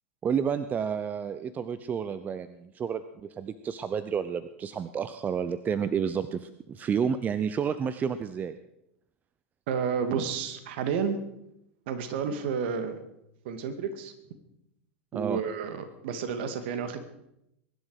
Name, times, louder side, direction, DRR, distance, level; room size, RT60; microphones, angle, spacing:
voice 1, 0.2-3.0 3.3-8.5 15.1-15.4, right 7 dB, 25° right, 13 dB, 0.7 m, -30 dB
voice 2, 9.7-11.2 11.9-13.0 13.4-14.1 15.1-17.0, right 6 dB, 55° right, 9 dB, 2.1 m, -31 dB
22.5 x 11.0 x 4.9 m, 0.82 s
figure-of-eight pair, 95°, 7 cm